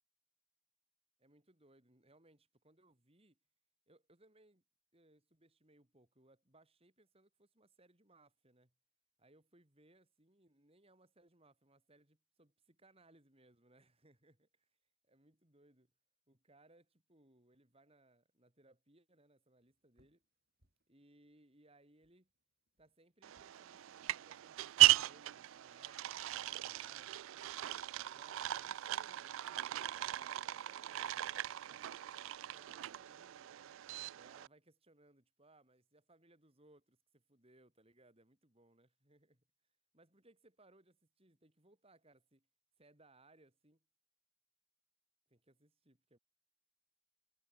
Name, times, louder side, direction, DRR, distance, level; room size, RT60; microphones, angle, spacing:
voice 1, 1.2-3.4 3.9-4.6 4.9-8.7 9.2-14.7 15.0-15.9 16.3-20.2 20.9-22.3 22.8-27.6 28.1-31.9 32.4-33.8 34.1-39.4 39.9-42.5 42.8-43.8 45.3-46.2, right 2 dB, 25° right, 3.0 m, -68 dB
sound 1, 19.6-26.7, right 1 dB, 45° right, 7.1 m, -82 dB
sound 2, 23.2-34.5, right 16 dB, 65° right, 0.3 m, -36 dB
head